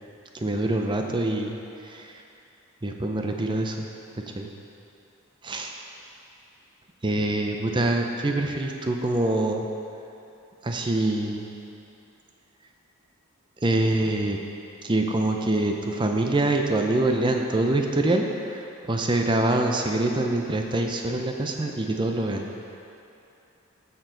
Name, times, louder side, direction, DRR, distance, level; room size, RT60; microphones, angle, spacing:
voice 1, 0.3-1.6 1.9-2.1 2.8-3.9 4.3-4.5 5.4-5.7 7.0-9.7 10.6-11.5 13.6-14.4 14.8-22.5, right 2 dB, 20° right, 3 dB, 0.5 m, -25 dB
10.0 x 6.9 x 3.9 m, 2.8 s
head